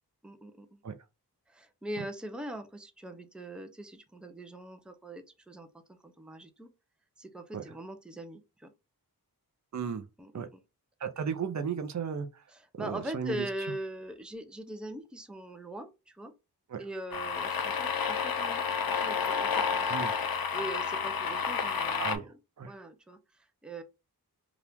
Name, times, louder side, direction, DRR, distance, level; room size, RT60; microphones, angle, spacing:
voice 1, 0.2-0.8 1.5-6.7 7.2-8.7 10.2-10.5 12.8-16.3 16.8-19.9 20.5-22.4 22.6-23.8, right 1 dB, ahead, 0.5 m, -42 dB
voice 2, 9.7-10.1 10.3-10.5 11.0-12.4 12.8-13.5 16.7-16.8 19.9-20.1 22.0-22.7, right 6 dB, 45° right, 0.6 m, -35 dB
sound 1, 17.1-22.2, left 6 dB, 65° left, 0.6 m, -30 dB
2.9 x 2.4 x 3.4 m
wide cardioid pair, 75°, 39 cm